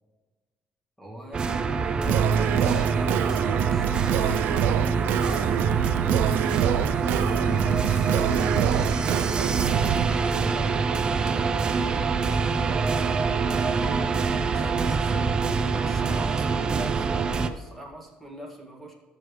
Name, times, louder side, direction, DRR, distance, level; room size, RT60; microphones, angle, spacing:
voice 1, 1.0-5.8 14.0-14.2 14.5-15.1 15.7-18.9, right 1 dB, 5° left, -2 dB, 2.0 m, -41 dB
sound 1, 1.3-17.5, right 4 dB, 30° right, 0.5 m, -25 dB
Singing, 2.0-10.0, right 11 dB, 90° right, 0.3 m, -26 dB
sound 2, 4.2-4.8 5.2-5.9 6.3-6.9 7.2-8.5 9.6-10.1, left 5 dB, 75° left, 1.5 m, -51 dB
voice 2, 6.8-7.9 8.3-13.2 13.8-13.9 14.3-14.9 15.1-15.5, left 2 dB, 30° left, 0 dB, 1.2 m, -43 dB
13.5 x 7.0 x 3.2 m, 1.5 s
cardioid pair, 135°, 3 cm